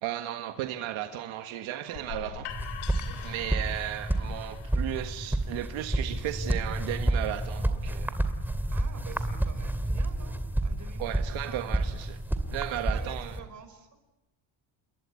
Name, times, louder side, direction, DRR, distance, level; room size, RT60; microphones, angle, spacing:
voice 1, 0.0-2.5 3.2-8.2 11.0-12.2 12.5-13.4, right 12 dB, 80° right, 6 dB, 1.6 m, -35 dB
sound 1, 1.9-7.7, left 10 dB, 85° left, 3.6 m, -45 dB
voice 2, 1.9-2.4 3.0-3.5 8.7-11.7 12.7-14.0, right 6 dB, 40° right, 9 dB, 5.2 m, -48 dB
sound 2, 2.5-13.4, right 1 dB, 5° right, 2.5 m, -30 dB
29.0 x 22.5 x 8.6 m, 1.0 s
cardioid pair, 125°, 46 cm